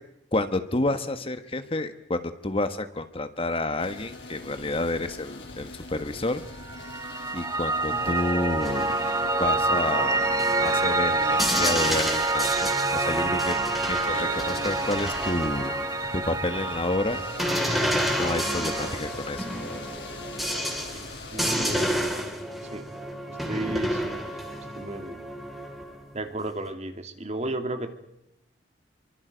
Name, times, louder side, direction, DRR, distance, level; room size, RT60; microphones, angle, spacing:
voice 1, 0.3-6.4 7.3-8.9 9.4-10.3 10.6-13.6 13.9-15.8 16.3-17.2 18.2-19.5, left 2 dB, 30° left, 9 dB, 1.4 m, -29 dB
sound 1, 3.8-22.0, left 2 dB, 75° left, 5.9 m, -41 dB
Piano, 6.6-19.0, right 3 dB, 20° right, 0.9 m, -27 dB
sound 2, 8.6-16.3 17.4-26.2, equal, ahead, 3.5 m, -31 dB
voice 2, 21.3-22.2 22.7-22.8 23.5-24.1 24.8-25.2 26.1-27.9, right 2 dB, 40° right, 7 dB, 2.3 m, -33 dB
29.5 x 24.0 x 5.2 m, 0.83 s
head